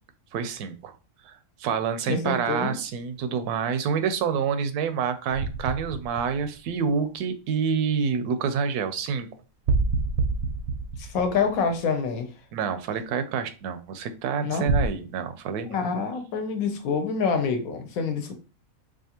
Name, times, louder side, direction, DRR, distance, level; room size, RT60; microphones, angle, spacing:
voice 1, 0.3-0.9 1.2-9.3 12.5-15.8, right 6 dB, 85° right, 1.1 m, -27 dB
voice 2, 2.1-2.8 11.0-12.3 14.5-14.6 15.7-18.3, left 5 dB, 70° left, 1.1 m, -26 dB
sound 1, 5.3-7.2 9.7-12.2 14.7-14.9, right 3 dB, 65° right, 0.7 m, -27 dB
4.8 x 2.4 x 2.8 m
omnidirectional pair, 1.6 m